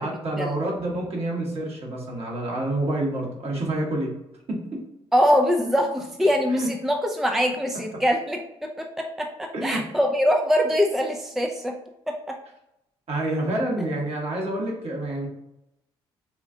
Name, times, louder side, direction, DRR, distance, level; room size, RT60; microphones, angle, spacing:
voice 1, 0.0-4.1 4.5-4.8 6.5-6.7 9.5-9.8 13.1-15.3, right 1 dB, 50° right, -2 dB, 1.3 m, -28 dB
voice 2, 5.1-11.7 12.1-12.4, equal, ahead, 2 dB, 0.4 m, -23 dB
4.2 x 2.4 x 2.7 m, 0.86 s
hypercardioid pair, 55°, 13 cm